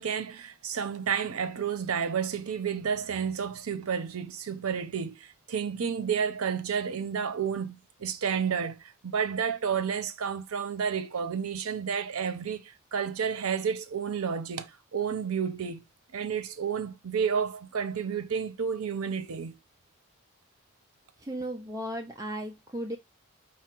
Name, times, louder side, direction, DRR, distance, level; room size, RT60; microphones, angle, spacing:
voice 1, 0.0-15.8 16.1-19.6, right 7 dB, 90° right, 0.6 m, -31 dB
voice 2, 21.2-23.0, equal, 15° right, 0.4 m, -35 dB
4.8 x 2.0 x 4.4 m
head